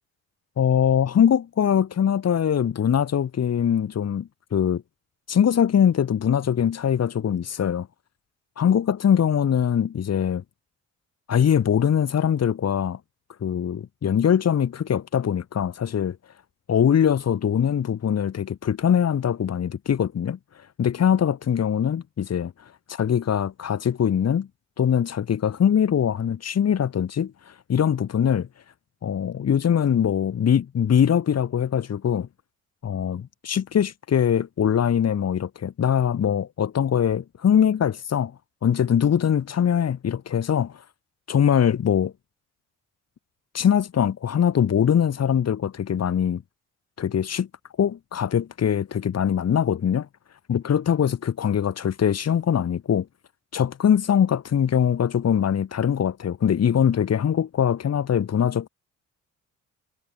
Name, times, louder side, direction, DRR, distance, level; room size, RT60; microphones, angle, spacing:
voice 1, 0.6-4.8 5.3-7.9 8.6-10.4 11.3-13.0 13.4-16.2 16.7-20.4 20.8-22.5 22.9-24.5 24.8-28.5 29.0-32.3 32.8-38.3 38.6-40.8 41.3-42.1 43.5-46.4 47.0-47.5 47.8-50.1 50.5-53.1 53.5-58.7, left 8 dB, 55° left, 7.9 m, -22 dB
cardioid pair, 90°, 30 cm